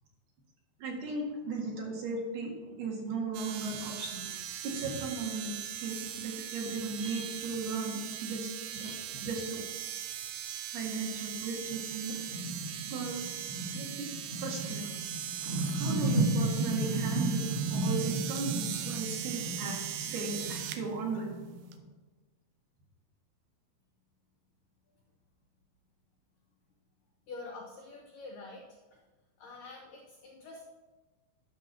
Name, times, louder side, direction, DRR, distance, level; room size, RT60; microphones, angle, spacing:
voice 1, 0.8-2.5 2.8-4.3 4.6-9.7 10.7-12.2 12.6-13.2 13.7-14.1 14.4-14.9 15.7-21.3, right 3 dB, 60° right, -1 dB, 3.2 m, -36 dB
sound 1, 3.3-20.8 21.7-21.8, right 11 dB, 80° right, 2.6 m, -40 dB
sound 2, 11.7-21.8, right 2 dB, 45° right, 1.9 m, -34 dB
voice 2, 27.3-28.8 29.4-30.6, left 3 dB, 85° left, 0 dB, 1.8 m, -46 dB
12.0 x 6.1 x 5.9 m, 1.3 s
omnidirectional pair, 5.6 m